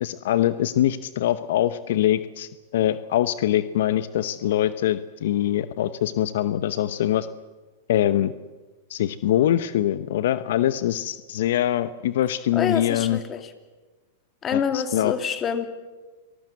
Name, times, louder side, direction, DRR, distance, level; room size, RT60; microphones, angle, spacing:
voice 1, 0.0-7.3 7.9-8.3 8.9-13.2 14.5-15.1, left 12 dB, 70° left, 14 dB, 0.9 m, -23 dB
voice 2, 12.5-13.5 14.4-15.7, left 7 dB, 25° left, 9 dB, 2.5 m, -26 dB
27.0 x 19.5 x 8.2 m, 1.2 s
hypercardioid pair, 130°, 0 cm